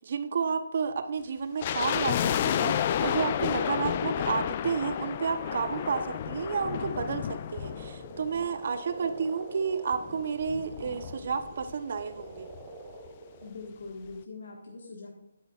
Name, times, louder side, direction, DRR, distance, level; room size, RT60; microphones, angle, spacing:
voice 1, 0.0-2.2 2.4-7.2 7.5-12.5, right 5 dB, 50° right, 10 dB, 0.7 m, -31 dB
sound 1, 1.6-8.9 9.1-9.2 9.9-11.7 12.0-12.1 12.3-12.6 13.1-13.2, left 10 dB, 35° left, 0.3 m, -31 dB
sound 2, 3.1-13.5, right 3 dB, 25° right, 1.0 m, -47 dB
voice 2, 13.4-15.1, left 3 dB, 65° left, -1 dB, 1.4 m, -42 dB
9.0 x 8.1 x 2.4 m, 0.81 s
figure-of-eight pair, 155°, 0 cm